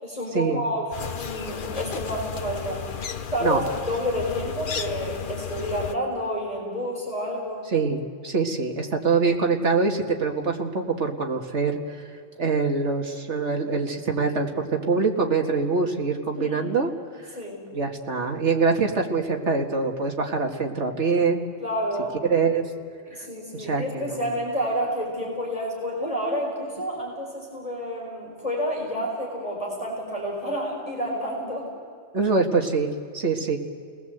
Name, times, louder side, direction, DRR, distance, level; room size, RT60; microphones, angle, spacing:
voice 1, 0.0-0.9 1.2-7.7 16.3-16.7 17.3-17.6 21.6-22.2 23.1-31.7, equal, 30° left, -3 dB, 4.7 m, -29 dB
sound 1, 0.9-6.0, left 7 dB, 45° left, 0.9 m, -33 dB
voice 2, 7.7-12.0 12.4-16.9 17.2-17.3 17.7-21.4 22.3-22.6 23.5-24.2 32.1-32.9 33.1-33.6, right 4 dB, 65° right, 3 dB, 2.1 m, -24 dB
29.5 x 19.0 x 8.0 m, 2.3 s
omnidirectional pair, 1.3 m